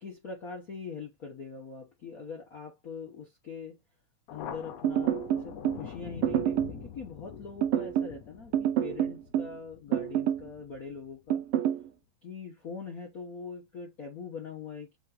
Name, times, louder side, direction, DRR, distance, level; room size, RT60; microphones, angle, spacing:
voice 1, 0.0-3.8 4.3-11.4 12.2-15.0, left 5 dB, 65° left, 0.8 m, -42 dB
Thunder, 4.3-11.3, left 8 dB, 85° left, 2.3 m, -45 dB
sound 1, 4.8-5.8 6.2-6.8 7.6-8.2 8.5-9.6 9.9-10.5 11.3-11.8, right 11 dB, 75° right, 1.3 m, -27 dB
8.1 x 2.7 x 2.4 m
omnidirectional pair, 3.4 m